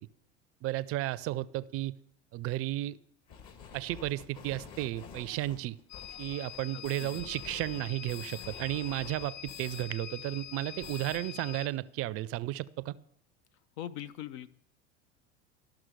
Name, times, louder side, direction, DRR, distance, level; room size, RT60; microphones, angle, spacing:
voice 1, 0.6-2.0 2.3-3.0 3.7-5.8 6.2-13.0, right 15 dB, 40° right, 19 dB, 0.4 m, -33 dB
sound 1, 3.3-9.9 10.2-10.3 10.6-11.2, left 7 dB, 50° left, 1.8 m, -49 dB
sound 2, 5.9-11.7, left 11 dB, 30° left, 0.7 m, -45 dB
voice 2, 6.7-7.4 13.8-14.5, left 11 dB, 70° left, 14 dB, 0.5 m, -42 dB
12.5 x 6.0 x 6.4 m, 0.74 s
hypercardioid pair, 80°, 36 cm